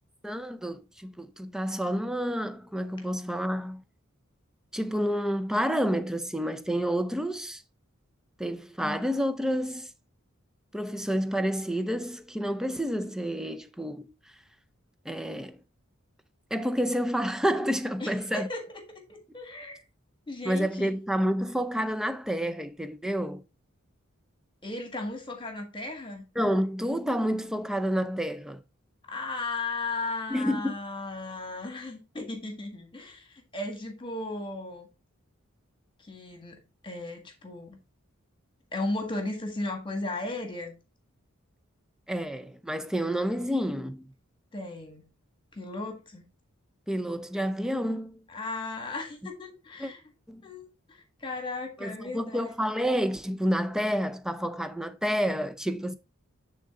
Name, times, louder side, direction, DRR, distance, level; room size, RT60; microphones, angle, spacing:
voice 1, 0.2-3.8 4.7-7.6 8.4-9.9 10.7-14.1 15.1-15.6 16.5-18.5 20.4-23.4 26.4-28.6 30.3-30.7 42.1-44.1 46.9-48.3 49.8-49.9 50.3-50.5 51.8-55.9, equal, 5° right, 0.5 m, -29 dB
voice 2, 18.0-18.8 19.1-19.8 20.3-20.9 24.6-26.3 29.1-34.9 36.0-37.8 38.7-40.7 44.5-45.0 45.5-46.2 48.3-50.0 50.4-52.5, left 2 dB, 25° left, 1.6 m, -36 dB
10.0 x 3.8 x 3.6 m
head